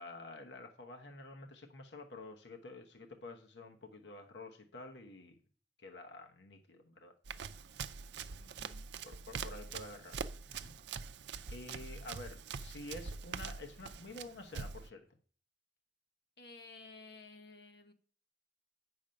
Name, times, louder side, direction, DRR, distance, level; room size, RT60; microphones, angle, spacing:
voice 1, 0.0-5.4 5.8-7.2 9.0-10.2 10.5-10.7 11.5-15.1, left 2 dB, 90° left, 4 dB, 1.0 m, -49 dB
Run, 7.3-14.9, right 5 dB, 90° right, 0.5 m, -44 dB
voice 2, 8.4-8.8 11.7-11.8 16.4-17.9, left 3 dB, 70° left, 5 dB, 1.2 m, -54 dB
8.7 x 6.2 x 5.2 m, 0.43 s
head